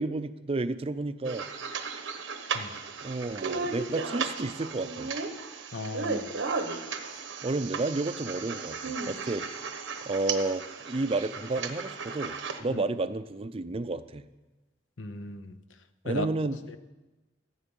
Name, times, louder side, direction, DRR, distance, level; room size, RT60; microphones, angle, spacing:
voice 1, 0.0-1.5 3.0-5.1 7.4-9.5 10.1-14.3 16.0-16.6, right 2 dB, 30° right, 12 dB, 0.5 m, -31 dB
sound 1, 1.2-12.6, right 4 dB, 80° right, 1.0 m, -35 dB
voice 2, 5.7-6.3 7.1-7.2 12.7-12.8 15.0-15.6 16.0-16.3 16.7-16.8, left 2 dB, 90° left, 10 dB, 0.8 m, -36 dB
14.5 x 8.2 x 5.4 m, 1.1 s
head